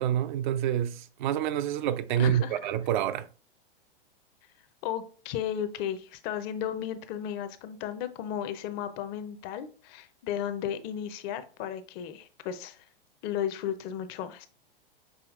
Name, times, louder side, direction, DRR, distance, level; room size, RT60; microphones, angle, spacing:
voice 1, 0.0-3.3, right 10 dB, 55° right, 0.4 m, -27 dB
voice 2, 2.2-2.6 4.8-12.8 13.2-14.5, left 9 dB, 35° left, 0.5 m, -34 dB
6.3 x 2.9 x 2.4 m
hypercardioid pair, 115°, 29 cm